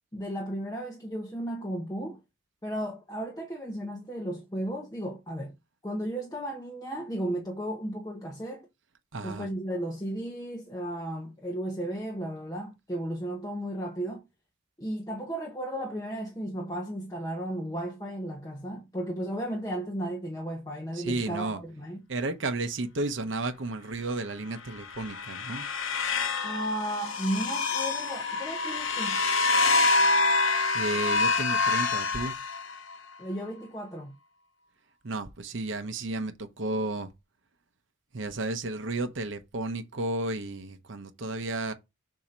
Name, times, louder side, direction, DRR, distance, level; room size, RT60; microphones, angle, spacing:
voice 1, 0.1-2.2 2.6-5.5 5.8-8.7 9.2-14.2 14.8-22.0 26.4-29.2 33.2-34.1, right 1 dB, 15° left, 0.9 m, -34 dB
voice 2, 9.1-9.5 20.9-21.6 22.1-25.7 30.7-32.3 35.0-37.1 38.1-41.7, right 2 dB, 60° right, 0.8 m, -32 dB
sound 1, 24.7-33.0, left 3 dB, 65° left, 0.8 m, -26 dB
7.1 x 2.8 x 5.1 m
head